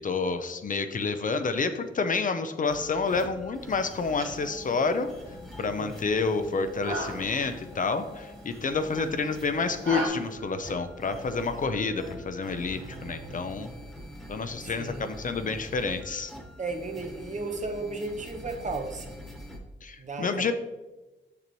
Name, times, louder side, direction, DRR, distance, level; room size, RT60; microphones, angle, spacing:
voice 1, 0.0-5.1 5.6-13.7 14.3-16.3 19.8-20.5, left 4 dB, 40° left, 9 dB, 0.5 m, -29 dB
sound 1, 2.7-19.6, left 1 dB, ahead, 1.2 m, -45 dB
sound 2, 3.9-10.1, right 1 dB, 80° right, 1.8 m, -39 dB
voice 2, 5.6-6.0 12.7-13.6 14.6-15.1 16.6-19.2 20.0-20.5, right 3 dB, 40° right, 4 dB, 0.8 m, -36 dB
6.8 x 6.5 x 3.0 m, 1.1 s
wide cardioid pair, 110°, 20 cm